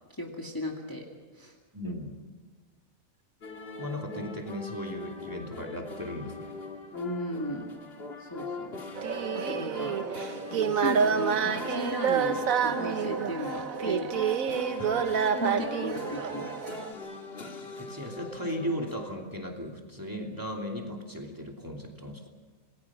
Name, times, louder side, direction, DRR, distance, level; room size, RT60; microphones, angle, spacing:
voice 1, 0.2-1.1 1.3-1.5 1.8-1.9 6.9-7.7 8.2-8.9 9.3-10.0 10.5-14.1 15.4-16.5, left 1 dB, 15° left, 0 dB, 2.2 m, -36 dB
voice 2, 1.7-2.1 3.8-6.5 14.8-15.0 17.8-22.2, equal, 15° right, 1 dB, 2.9 m, -36 dB
sound 1, 3.4-19.2, left 2 dB, 45° left, 2.0 m, -41 dB
sound 2, 9.0-16.9, right 7 dB, 90° right, 1.5 m, -28 dB
27.5 x 20.0 x 6.1 m, 1.4 s
omnidirectional pair, 1.4 m